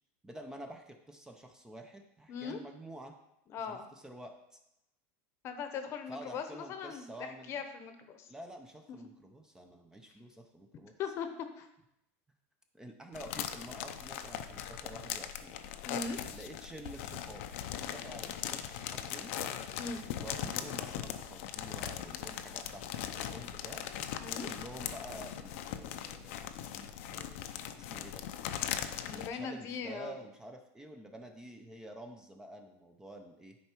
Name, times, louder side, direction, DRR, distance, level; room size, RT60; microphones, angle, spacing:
voice 1, 0.2-3.2 3.6-4.6 6.1-7.5 8.3-10.9 12.7-15.6 16.3-17.4 17.7-19.3 20.2-23.8 24.3-26.5 26.7-27.4 27.8-28.2 29.1-33.6, right 1 dB, 10° right, 4 dB, 0.6 m, -49 dB
voice 2, 2.3-2.6 3.5-3.8 5.4-8.3 8.9-9.0 11.0-11.3 11.6-11.7 15.8-16.2 19.8-20.0 24.2-24.5 29.1-30.1, left 5 dB, 40° left, 8 dB, 0.9 m, -39 dB
sound 1, 13.1-29.3, left 10 dB, 75° left, 0.6 m, -40 dB
10.0 x 4.6 x 4.5 m, 0.83 s
supercardioid pair, 140°, 7 cm